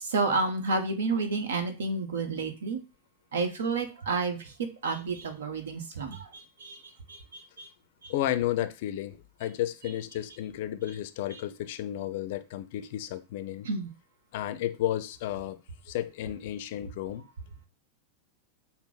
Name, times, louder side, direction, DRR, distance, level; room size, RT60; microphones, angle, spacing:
voice 1, 0.1-2.8 3.3-4.4 4.8-6.8 7.1-7.2 7.6-7.7 13.6-13.9, right 3 dB, 60° right, 0.9 m, -30 dB
voice 2, 8.1-13.7 14.3-15.6 15.9-17.2, left 13 dB, 50° left, 0.4 m, -32 dB
5.7 x 2.0 x 4.0 m
figure-of-eight pair, 90°, 0 cm